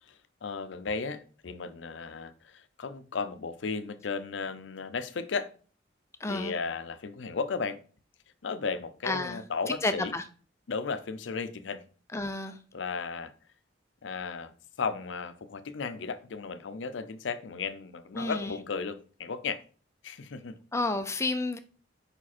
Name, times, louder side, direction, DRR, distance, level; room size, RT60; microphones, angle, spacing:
voice 1, 0.0-5.5 6.3-7.8 8.4-10.1 10.7-11.8 12.7-13.3 14.0-14.5 14.8-19.6 20.0-20.6, left 5 dB, 75° left, 0.6 m, -35 dB
voice 2, 6.2-6.5 9.0-9.4 9.7-10.2 12.1-12.6 18.1-18.6 20.7-21.6, left 2 dB, 15° left, 0.5 m, -31 dB
5.1 x 4.9 x 4.2 m
head